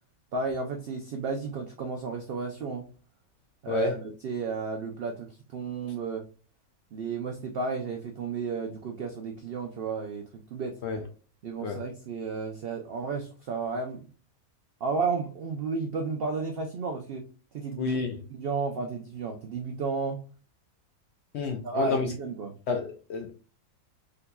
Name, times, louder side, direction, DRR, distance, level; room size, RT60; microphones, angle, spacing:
voice 1, 0.3-2.9 3.6-6.3 6.9-10.8 11.4-14.1 14.8-17.3 17.5-17.9 18.3-20.2 21.4-22.6, right 4 dB, 80° right, 0.5 m, -32 dB
voice 2, 17.8-18.2 21.3-22.1 22.7-23.3, left 5 dB, 70° left, 0.6 m, -30 dB
3.7 x 2.7 x 2.2 m
omnidirectional pair, 1.5 m